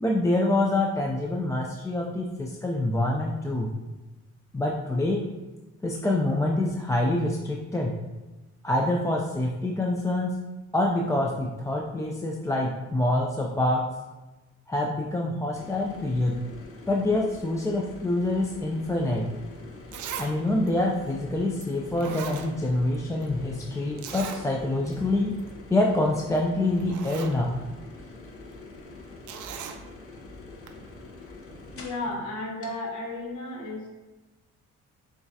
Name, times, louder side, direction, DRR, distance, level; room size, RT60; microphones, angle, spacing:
voice 1, 0.0-3.7 4.5-5.3 5.8-7.9 8.6-10.4 10.7-13.8 14.7-16.4 16.9-19.3 20.2-25.4 25.7-27.5, left 1 dB, 10° left, -1 dB, 0.3 m, -26 dB
sound 1, 15.5-32.1 32.6-32.7, left 3 dB, 45° left, 0.8 m, -45 dB
Zipper (clothing), 19.9-20.3 20.7-20.8 21.6-21.7 22.0-23.0 23.2-23.3 24.0-24.4 24.9-25.0 25.3-25.5 26.4-26.5 26.8-27.4 29.3-29.8 30.7-30.8, right 8 dB, 75° right, 0.5 m, -38 dB
voice 2, 31.7-33.9, left 2 dB, 75° left, -2 dB, 1.4 m, -33 dB
7.0 x 2.3 x 2.7 m, 1.1 s
cardioid pair, 90°, 30 cm